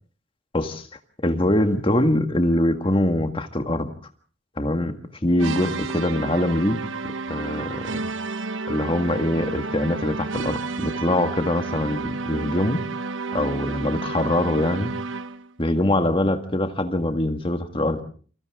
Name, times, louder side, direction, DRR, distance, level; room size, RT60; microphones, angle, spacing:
voice 1, 0.5-0.9 1.2-3.9 4.6-4.9 5.2-6.8 7.3-7.9 8.7-12.8 13.3-14.9 15.6-18.0, left 1 dB, 25° left, 7 dB, 1.8 m, -23 dB
sound 1, 5.4-15.5, right 3 dB, 70° right, 0.9 m, -31 dB
29.5 x 25.0 x 3.7 m, 0.42 s
head